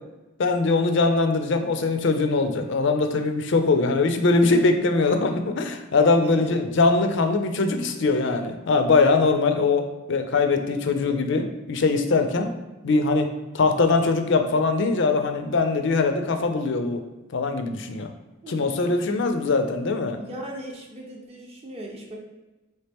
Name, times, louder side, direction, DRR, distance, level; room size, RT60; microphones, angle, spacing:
voice 1, 0.4-12.5 12.8-13.3 13.5-17.0 17.3-18.1 18.5-20.2, left 3 dB, 60° left, 7 dB, 0.5 m, -22 dB
voice 2, 6.2-6.7 11.0-11.2 18.4-18.9 20.2-22.2, equal, 30° right, 0 dB, 0.6 m, -38 dB
4.2 x 3.2 x 3.4 m, 1.1 s
head